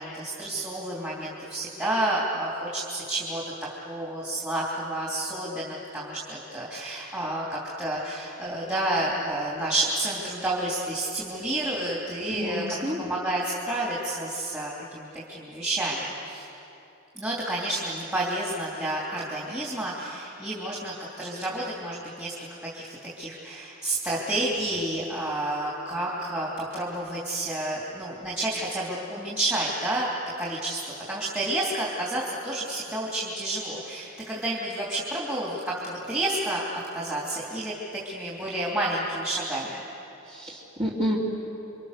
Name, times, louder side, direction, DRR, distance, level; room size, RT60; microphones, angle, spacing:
voice 1, 0.0-3.4 3.8-12.6 13.0-16.5 17.1-22.5 22.7-30.1 30.4-37.7 38.0-39.8, right 1 dB, 10° right, -6 dB, 3.1 m, -30 dB
voice 2, 12.3-13.0 40.3-41.2, equal, 30° right, -6 dB, 3.0 m, -29 dB
29.0 x 24.5 x 6.7 m, 2.9 s
head